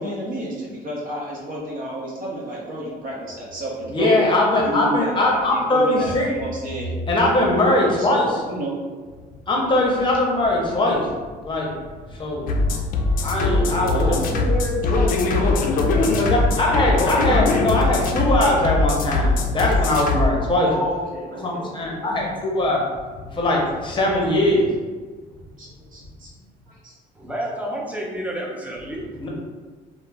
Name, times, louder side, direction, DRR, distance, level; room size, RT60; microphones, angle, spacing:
voice 1, 0.0-4.2 4.6-6.9 8.0-8.8 13.9-16.2 16.7-16.8 20.7-22.4 24.3-24.4 25.6-26.3 26.8-26.9, equal, 55° right, -4 dB, 0.7 m, -31 dB
voice 2, 3.9-6.3 7.1-8.2 9.5-11.1 11.4-11.7 12.2-12.5 13.2-14.1 16.2-20.7 21.4-22.8 23.3-24.7 29.2-29.3, left 1 dB, 30° left, -2 dB, 0.7 m, -20 dB
sound 1, 12.5-20.3, left 2 dB, 55° left, 0.4 m, -21 dB
voice 3, 27.2-29.3, right 1 dB, 10° right, -3 dB, 0.5 m, -30 dB
2.4 x 2.0 x 3.2 m, 1.4 s
cardioid pair, 110°, 17 cm